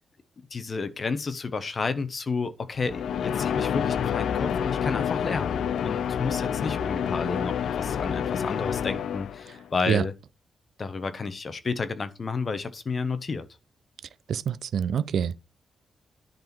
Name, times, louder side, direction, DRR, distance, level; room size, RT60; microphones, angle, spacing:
voice 1, 0.5-10.1 10.8-13.5, left 4 dB, 30° left, 1.0 m, -31 dB
sound 1, 2.8-9.6, left 8 dB, 70° left, 0.5 m, -28 dB
voice 2, 14.3-15.4, right 8 dB, 60° right, 0.5 m, -26 dB
10.5 x 4.1 x 4.4 m
wide cardioid pair, 165°, 0 cm